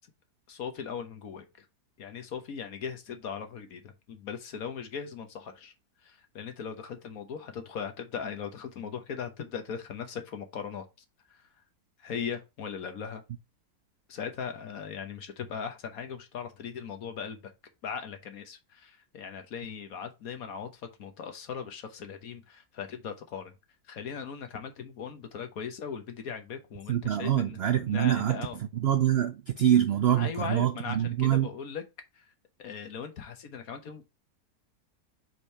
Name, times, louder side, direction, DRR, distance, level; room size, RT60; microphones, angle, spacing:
voice 1, 0.5-1.6 2.0-5.7 6.0-10.9 11.3-11.4 12.0-13.2 14.1-17.5 17.8-23.5 23.9-27.6 27.9-28.6 30.2-31.8 32.1-32.3 32.6-34.0, left 7 dB, 65° left, 1.4 m, -39 dB
voice 2, 26.9-28.5 28.7-31.5, right 10 dB, 80° right, 0.5 m, -25 dB
5.1 x 4.6 x 4.2 m
omnidirectional pair, 1.7 m